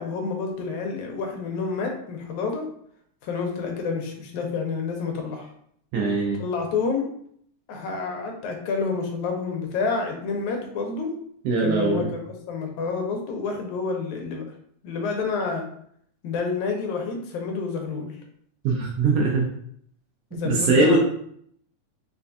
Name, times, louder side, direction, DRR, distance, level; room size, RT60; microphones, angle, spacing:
voice 1, 0.0-2.6 3.2-5.5 6.4-7.0 7.7-11.1 11.6-14.4 14.8-15.7 16.2-18.2 20.3-21.0, left 4 dB, 85° left, 2 dB, 2.1 m, -29 dB
voice 2, 5.9-6.4 11.4-12.1 18.6-19.5 20.4-21.0, right 3 dB, 75° right, -2 dB, 1.6 m, -21 dB
5.0 x 2.3 x 2.6 m, 0.66 s
omnidirectional pair, 3.4 m